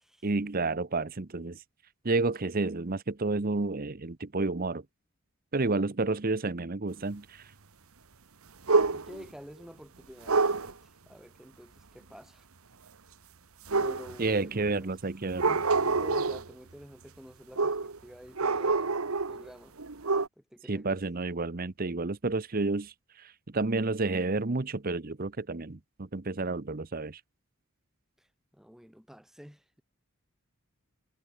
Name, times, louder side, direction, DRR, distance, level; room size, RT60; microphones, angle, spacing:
voice 1, 0.2-1.6 2.0-4.8 5.5-7.5 14.2-15.6 20.7-27.2, right 3 dB, 40° right, 0.8 m, -30 dB
sound 1, 8.7-9.3 10.3-10.7 13.7-14.4 15.3-16.5 17.6-18.0 18.4-19.5 19.8-20.3, right 4 dB, 75° right, 1.3 m, -27 dB
voice 2, 8.9-12.5 13.8-14.9 15.7-19.8 20.4-21.0 28.2-28.3 28.5-29.7, equal, ahead, 6.0 m, -49 dB
head